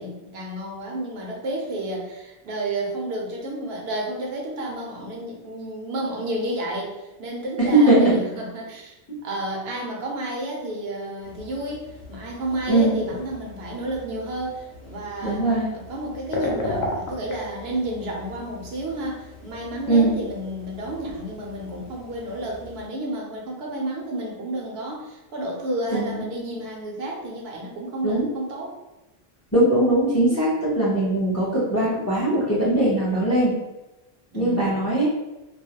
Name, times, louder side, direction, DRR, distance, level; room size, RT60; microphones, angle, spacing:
voice 1, 0.0-8.9 9.2-15.5 15.7-28.7 34.3-34.9, right 1 dB, 75° right, -1 dB, 0.8 m, -31 dB
voice 2, 7.6-8.2 12.7-12.9 15.2-15.7 19.9-20.1 25.9-26.2 28.0-28.3 29.5-33.5 34.3-35.1, right 1 dB, 20° left, -7 dB, 0.5 m, -20 dB
sound 1, 11.2-22.9, left 2 dB, 85° left, 0.8 m, -37 dB
2.3 x 2.0 x 2.8 m, 1.0 s
omnidirectional pair, 1.1 m